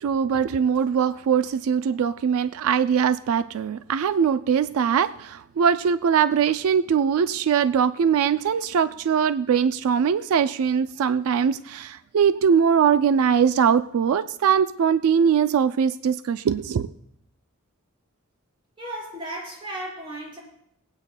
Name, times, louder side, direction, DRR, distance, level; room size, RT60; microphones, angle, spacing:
voice 1, 0.0-16.9, right 7 dB, 85° right, 13 dB, 0.3 m, -21 dB
voice 2, 18.8-20.4, right 1 dB, 25° right, -4 dB, 4.4 m, -35 dB
25.5 x 8.9 x 2.2 m, 0.75 s
head